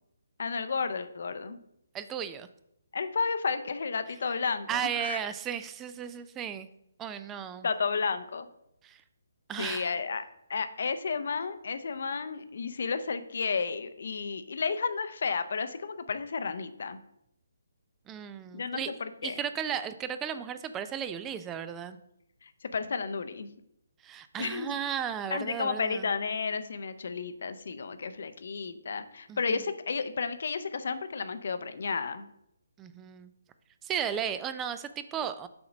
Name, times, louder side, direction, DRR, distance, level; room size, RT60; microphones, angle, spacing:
voice 1, 0.4-1.6 2.9-5.2 7.6-8.5 9.6-10.2 10.5-17.0 18.5-19.4 22.4-23.5 24.4-24.7 25.3-32.3, left 5 dB, 55° left, 11 dB, 0.6 m, -32 dB
voice 2, 1.9-2.5 4.7-6.7 7.0-7.7 8.8-9.0 9.5-9.9 18.1-18.9 19.2-22.0 24.0-26.1 29.3-29.6 32.8-33.3 33.8-35.5, right 8 dB, 15° right, 12 dB, 0.3 m, -35 dB
7.0 x 3.8 x 5.1 m, 0.78 s
figure-of-eight pair, 140°, 0 cm